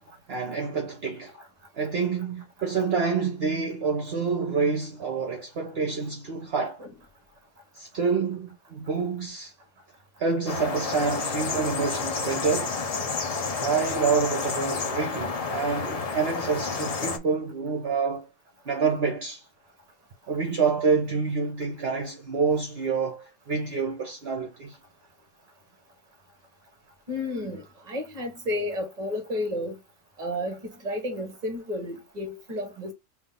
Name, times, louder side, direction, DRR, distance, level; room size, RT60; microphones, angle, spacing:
voice 1, 0.3-1.3 1.8-6.8 7.7-9.5 10.2-12.8 13.6-18.3 18.6-19.4 20.3-24.8, right 5 dB, 55° right, 1.0 m, -27 dB
sound 1, 10.5-17.2, left 4 dB, 50° left, 0.4 m, -30 dB
voice 2, 27.1-29.8 30.2-32.9, left 1 dB, 35° right, 1.3 m, -32 dB
3.7 x 2.6 x 3.5 m
omnidirectional pair, 1.3 m